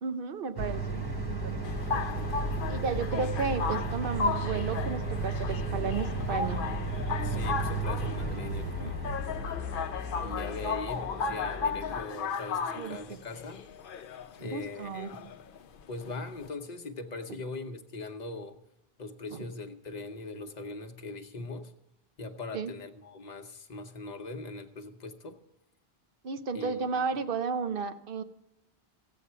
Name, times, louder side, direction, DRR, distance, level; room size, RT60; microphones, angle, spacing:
voice 1, 0.0-2.0 2.7-6.6 8.8-8.9 10.2-10.5 12.7-13.2 14.4-15.1 19.3-19.5 22.5-22.7 26.2-28.2, right 5 dB, 60° right, 10 dB, 0.9 m, -34 dB
sound 1, 0.6-12.0, right 2 dB, 25° right, 1.0 m, -34 dB
sound 2, 1.6-16.5, left 5 dB, 60° left, 0.7 m, -35 dB
voice 2, 7.2-9.1 10.2-13.7 14.4-15.2 15.9-18.6 19.0-21.7 22.2-25.4 26.5-27.0, left 3 dB, 45° left, 5 dB, 1.0 m, -41 dB
15.0 x 8.4 x 5.6 m, 0.84 s
omnidirectional pair, 1.1 m